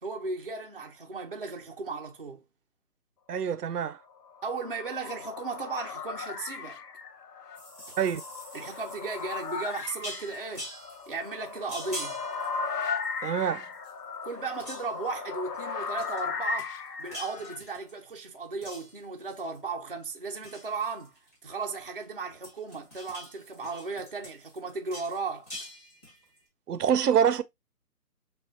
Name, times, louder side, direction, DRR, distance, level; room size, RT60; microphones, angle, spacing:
voice 1, 0.0-2.4 4.4-6.8 8.5-10.7 11.1-12.2 14.2-25.5, right 4 dB, 40° right, 0.5 m, -36 dB
voice 2, 3.3-4.0 8.0-8.2 13.2-13.7 26.7-27.4, right 8 dB, 75° right, 0.6 m, -25 dB
sound 1, 4.2-17.6, left 5 dB, 85° left, 0.9 m, -37 dB
sound 2, 7.5-13.4 13.7-14.3 14.5-15.1 16.0-16.3 16.6-18.1 18.6-19.7 20.0-22.0 22.3-26.4, equal, 10° left, 1.1 m, -45 dB
6.3 x 2.3 x 2.4 m
hypercardioid pair, 170°, 47 cm